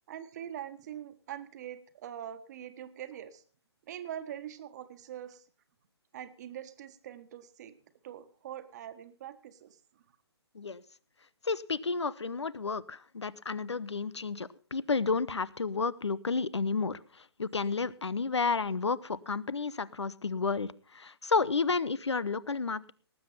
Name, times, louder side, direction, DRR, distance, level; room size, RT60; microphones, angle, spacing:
voice 1, 0.1-3.4 3.9-5.4 6.1-7.8 8.0-9.8, right 10 dB, 40° right, 10 dB, 1.4 m, -43 dB
voice 2, 11.4-22.9, left 4 dB, 80° left, 20 dB, 0.9 m, -31 dB
18.5 x 7.9 x 5.6 m, 0.40 s
figure-of-eight pair, 140°, 14 cm